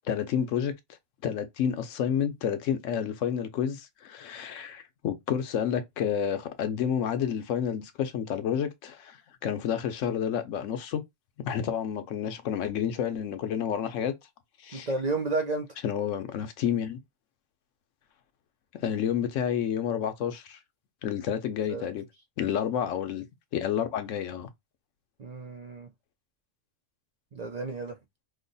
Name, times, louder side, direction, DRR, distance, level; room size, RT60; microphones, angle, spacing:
voice 1, 0.1-0.7 1.2-11.0 11.4-14.1 14.6-14.9 15.8-17.0 18.8-20.6 21.0-22.0 22.4-23.2 23.5-24.5, left 8 dB, 85° left, 1.0 m, -30 dB
voice 2, 14.7-15.7 21.7-21.9 25.2-25.9 27.3-28.0, right 3 dB, 50° right, 0.5 m, -31 dB
3.1 x 2.1 x 3.9 m
omnidirectional pair, 1.3 m